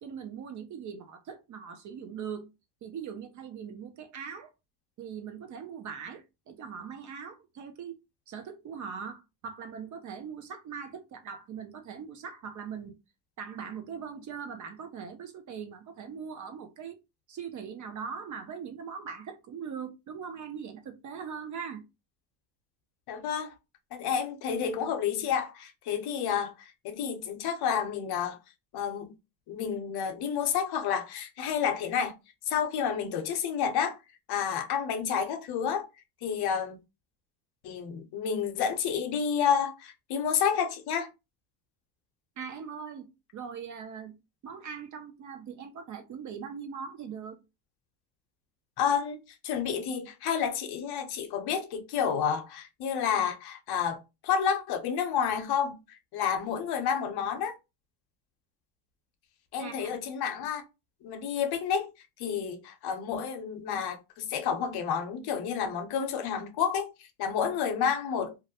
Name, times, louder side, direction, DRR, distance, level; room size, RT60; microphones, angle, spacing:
voice 1, 0.0-2.5 2.8-4.5 5.0-8.0 8.3-12.9 13.4-17.0 17.3-21.8 42.4-44.2 44.4-47.4 59.6-59.9, right 6 dB, 40° right, 0.5 m, -41 dB
voice 2, 23.1-23.5 23.9-28.4 28.7-29.1 29.5-32.1 32.5-34.0 34.3-35.9 36.2-36.8 37.6-41.1 48.8-49.2 49.4-57.6 59.5-60.6 61.0-61.9 62.2-68.4, left 7 dB, 50° left, 0.7 m, -30 dB
2.4 x 2.0 x 2.8 m
supercardioid pair, 90°, 50 cm